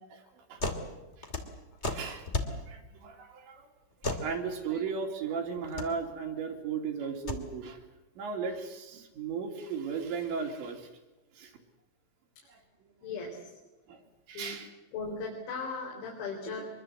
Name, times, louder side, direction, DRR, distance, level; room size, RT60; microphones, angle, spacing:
voice 1, 0.1-1.6 1.9-3.7 4.0-7.8 8.2-10.9 11.3-11.6 12.5-12.9 13.9-14.0 14.3-14.7 16.5-16.6, right 5 dB, 65° right, 3 dB, 4.5 m, -37 dB
sound 1, 0.6-0.8 1.1-2.6 4.0-4.3 5.5-5.9 7.1-7.4, left 2 dB, 45° left, 0.9 m, -33 dB
voice 2, 13.0-13.5 14.3-14.6 14.9-16.7, left 4 dB, 65° left, 0 dB, 6.0 m, -37 dB
24.5 x 23.0 x 7.9 m, 1.1 s
omnidirectional pair, 5.7 m